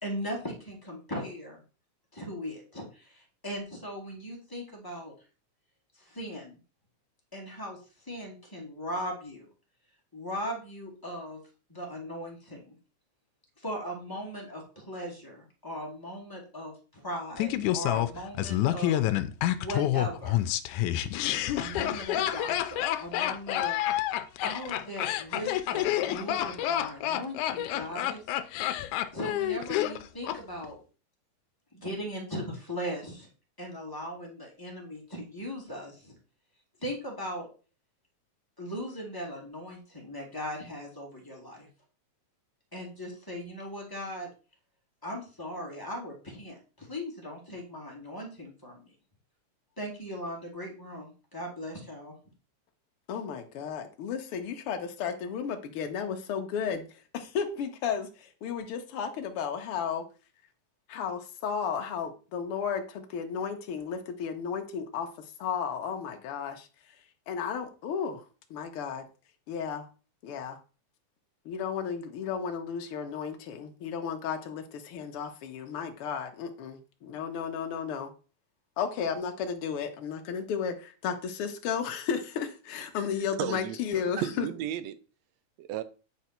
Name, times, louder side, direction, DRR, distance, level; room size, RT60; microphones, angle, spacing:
voice 1, 0.0-1.6 2.1-5.1 6.0-6.6 7.3-7.8 8.1-9.5 10.1-11.4 11.7-12.7 13.6-19.0 19.6-20.4 21.6-23.8 24.4-28.2 29.1-30.8 31.7-33.3 33.6-36.1 36.8-37.5 38.6-41.7 42.7-44.3 45.0-48.9 49.8-52.1, equal, 5° left, 2.3 m, -38 dB
Laughter, 17.4-30.4 30.6-30.7, left 13 dB, 85° left, 2.1 m, -28 dB
voice 2, 53.1-56.9 57.1-60.0 60.9-65.1 65.4-66.7 67.3-68.2 68.5-69.0 69.5-69.9 70.2-70.6 71.5-78.1 78.8-84.5, left 7 dB, 60° left, 1.7 m, -33 dB
voice 3, 83.4-85.0 85.6-85.8, right 11 dB, 75° right, 1.7 m, -34 dB
9.6 x 4.8 x 4.4 m
omnidirectional pair, 3.4 m